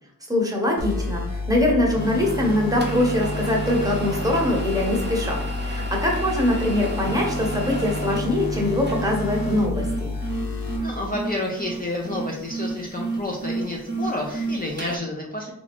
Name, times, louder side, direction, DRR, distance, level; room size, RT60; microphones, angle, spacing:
voice 1, 0.3-10.1, left 1 dB, 10° right, -2 dB, 1.0 m, -23 dB
sound 1, 0.8-10.8, left 2 dB, 85° left, 0.8 m, -29 dB
sound 2, 2.0-15.0, right 3 dB, 30° right, 0.6 m, -32 dB
voice 2, 10.5-15.5, left 1 dB, 25° left, -2 dB, 0.5 m, -30 dB
3.5 x 2.5 x 3.4 m, 0.79 s
wide cardioid pair, 70°, 34 cm